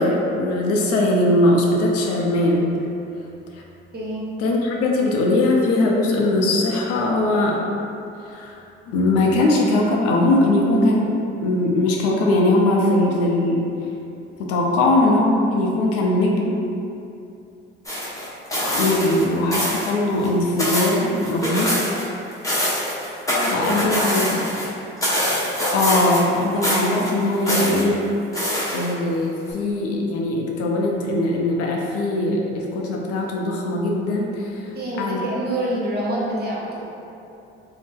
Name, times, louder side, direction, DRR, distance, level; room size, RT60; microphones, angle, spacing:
voice 1, 0.0-2.6 4.4-7.6 8.3-8.6 8.9-13.6 14.4-16.6 18.7-21.7 23.5-24.5 25.7-28.0 28.7-34.7 35.0-35.2, left 2 dB, 50° left, -1 dB, 0.5 m, -20 dB
voice 2, 3.9-4.3 23.3-23.9 24.2-24.3 34.7-36.9, right 1 dB, 30° right, -6 dB, 0.9 m, -27 dB
sound 1, 17.9-19.2 19.5-19.9 20.2-22.1 22.3-24.7 25.0-26.4 26.6-27.8 28.3-29.1 29.5-29.6, equal, 10° left, 0.9 m, -24 dB
2.6 x 2.0 x 3.5 m, 2.7 s
hypercardioid pair, 60°, 30 cm